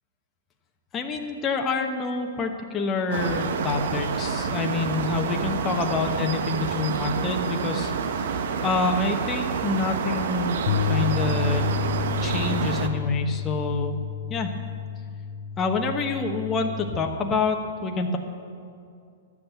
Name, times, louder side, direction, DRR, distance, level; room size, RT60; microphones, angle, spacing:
voice 1, 0.9-10.6 10.8-11.6 12.2-14.0 14.3-14.5 15.6-18.2, left 4 dB, 20° left, 3 dB, 1.0 m, -27 dB
sound 1, 3.1-12.9, right 6 dB, 65° right, 0.9 m, -28 dB
Bass guitar, 10.7-16.9, left 7 dB, 50° left, 0.6 m, -30 dB
12.0 x 7.8 x 8.1 m, 2.4 s
hypercardioid pair, 130°, 0 cm